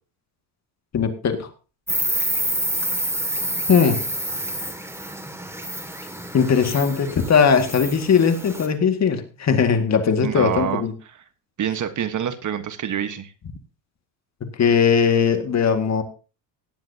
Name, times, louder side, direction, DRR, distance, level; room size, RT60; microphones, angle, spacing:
voice 1, 0.9-1.5 3.7-4.1 6.3-10.9 14.4-16.0, left 6 dB, 40° left, 7 dB, 2.1 m, -19 dB
Insect, 1.9-8.7, right 1 dB, 5° right, 2.2 m, -28 dB
voice 2, 10.2-10.8 11.6-13.3, right 9 dB, 45° right, 11 dB, 1.4 m, -26 dB
17.5 x 10.5 x 2.9 m, 0.33 s
cardioid pair, 110°, 41 cm